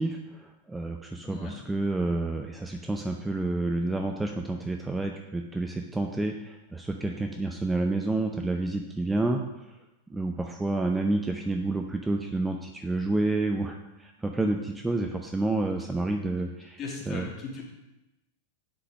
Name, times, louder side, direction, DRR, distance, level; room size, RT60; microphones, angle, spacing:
voice 1, 0.0-9.4 10.1-16.8 17.1-17.3, right 2 dB, 10° right, 3 dB, 0.6 m, -29 dB
voice 2, 1.2-1.6 16.8-17.6, left 4 dB, 30° left, -1 dB, 2.5 m, -38 dB
7.8 x 5.9 x 6.3 m, 1.0 s
figure-of-eight pair, 90°, 0 cm